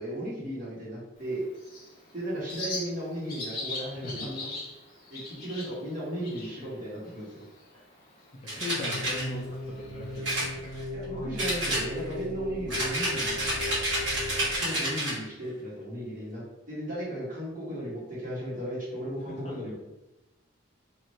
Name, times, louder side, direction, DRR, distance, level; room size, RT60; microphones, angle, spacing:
voice 1, 0.0-1.5 2.1-4.5 5.1-7.4 10.9-13.7 14.6-16.4 16.7-19.7, right 1 dB, 40° right, -8 dB, 1.2 m, -35 dB
Bird, 1.2-10.1, left 2 dB, 45° left, 1.0 m, -42 dB
voice 2, 3.9-4.3 8.5-10.7 19.3-19.5, left 2 dB, 30° left, -3 dB, 0.5 m, -39 dB
sound 1, 8.5-9.2 10.2-11.0 11.4-12.2 12.7-15.2, right 1 dB, 70° right, 1.4 m, -29 dB
sound 2, 8.8-14.6, left 1 dB, 90° left, 0.5 m, -37 dB
3.1 x 2.5 x 2.6 m, 0.96 s
head